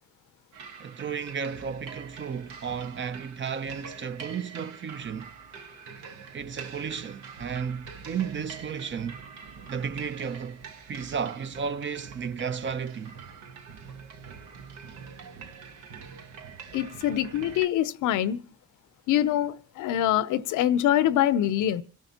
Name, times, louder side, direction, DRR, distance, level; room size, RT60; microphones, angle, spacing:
sound 1, 0.5-17.7, right 6 dB, 85° right, 1.3 m, -44 dB
voice 1, 0.8-5.3 6.3-9.2 9.7-10.6 10.9-13.2, right 6 dB, 40° right, 0.7 m, -33 dB
voice 2, 16.7-18.4 19.1-21.8, left 11 dB, 85° left, 0.7 m, -24 dB
27.5 x 13.0 x 2.8 m
cardioid pair, 90°, 30 cm